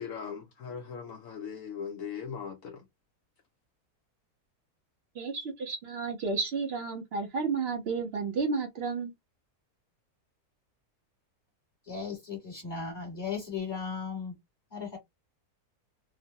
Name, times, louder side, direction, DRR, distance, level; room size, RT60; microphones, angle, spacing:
voice 1, 0.0-2.8, left 7 dB, 65° left, 0.9 m, -39 dB
voice 2, 5.2-9.1, right 4 dB, 55° right, 0.7 m, -32 dB
voice 3, 11.8-14.3 14.7-15.0, left 5 dB, 30° left, 1.5 m, -36 dB
3.0 x 2.1 x 2.7 m
omnidirectional pair, 1.6 m